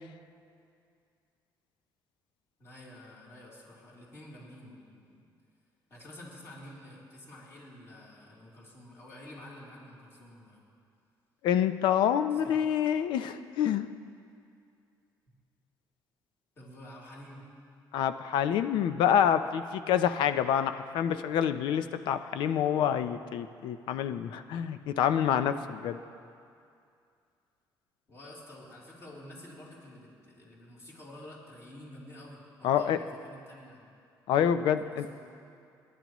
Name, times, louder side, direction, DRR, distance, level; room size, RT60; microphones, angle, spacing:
voice 1, 2.6-5.2 5.9-10.6 12.4-12.7 16.6-17.4 28.1-33.9 34.3-35.2, left 1 dB, 35° left, -6 dB, 3.4 m, -49 dB
voice 2, 11.4-13.9 17.9-26.0 32.6-33.0 34.3-35.1, left 9 dB, 85° left, 11 dB, 0.6 m, -27 dB
28.5 x 11.0 x 3.1 m, 2.4 s
cardioid pair, 165°, 8 cm